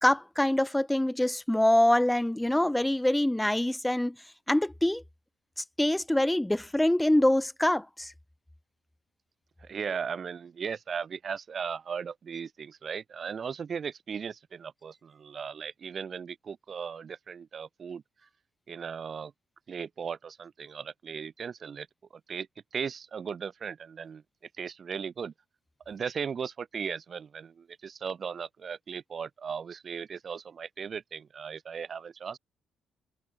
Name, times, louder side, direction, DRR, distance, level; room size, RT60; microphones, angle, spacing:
voice 1, 0.0-4.1 4.5-5.0 5.6-8.1, left 1 dB, 5° left, 1.4 m, -25 dB
voice 2, 9.6-18.0 18.7-19.3 19.7-21.9 22.3-24.2 24.6-25.3 25.8-32.4, right 6 dB, 45° right, 3.3 m, -37 dB
cardioid pair, 90°, 0 cm